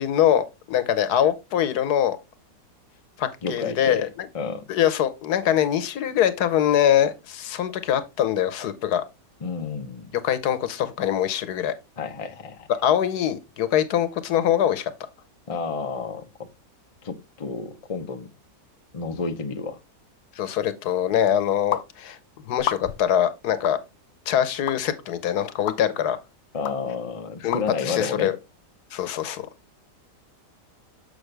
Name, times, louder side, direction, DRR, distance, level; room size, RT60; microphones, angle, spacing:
voice 1, 0.0-2.2 3.2-4.3 4.7-9.0 10.2-11.7 12.8-14.9 20.4-22.2 22.5-23.8 24.3-26.2 27.4-28.4 28.9-29.5, left 10 dB, 70° left, 1.3 m, -23 dB
voice 2, 3.4-4.1 4.3-4.7 9.4-10.1 12.0-12.7 15.5-16.3 17.0-18.3 18.9-19.8 26.5-28.3, left 5 dB, 40° left, 0.4 m, -30 dB
sound 1, 21.7-21.9 22.6-23.1 23.6-23.8 24.7-24.8 25.7-25.8 26.6-26.8 27.5-27.6, left 10 dB, 90° left, 0.5 m, -29 dB
6.8 x 6.4 x 3.2 m
omnidirectional pair, 1.8 m